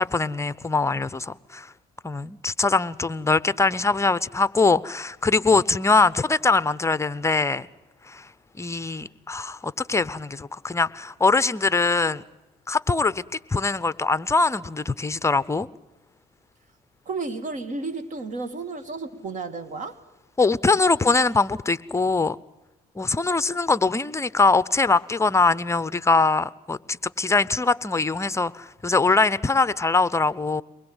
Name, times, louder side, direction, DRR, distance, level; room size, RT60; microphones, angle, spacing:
voice 1, 0.0-1.7 2.0-7.7 8.1-8.2 8.6-12.2 12.7-13.2 13.5-15.7 20.4-22.4 23.0-30.6, left 3 dB, 15° left, 17 dB, 0.8 m, -22 dB
voice 2, 17.1-20.0, right 3 dB, 45° right, 12 dB, 2.4 m, -32 dB
23.5 x 21.0 x 8.0 m, 0.97 s
cardioid pair, 110°, 17 cm